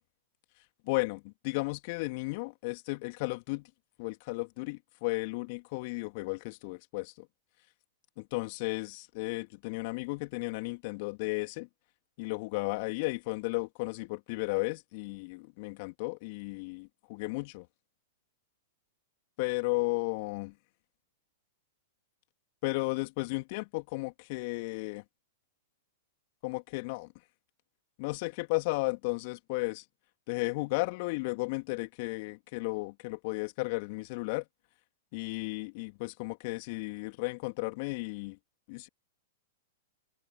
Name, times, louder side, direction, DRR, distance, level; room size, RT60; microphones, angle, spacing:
voice 1, 0.8-3.7 4.0-7.3 8.2-11.7 12.2-17.7 19.4-20.5 22.6-25.0 26.4-27.1 28.0-29.8 30.3-34.4 35.1-38.4 38.7-38.9, left 27 dB, 50° left, 2.8 m, -34 dB
open air
figure-of-eight pair, 105°, 0 cm